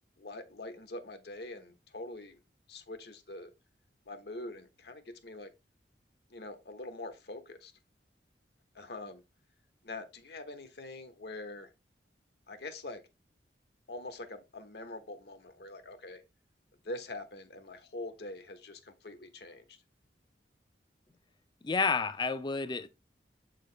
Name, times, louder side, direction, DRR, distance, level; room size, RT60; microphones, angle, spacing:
voice 1, 0.2-2.4 2.7-3.5 4.1-5.5 6.3-7.7 8.7-9.2 9.8-11.7 12.5-13.0 13.9-16.2 16.8-19.8, left 2 dB, 65° left, 1.0 m, -44 dB
voice 2, 21.6-22.9, left 4 dB, 25° left, 0.4 m, -30 dB
7.6 x 3.9 x 3.2 m
head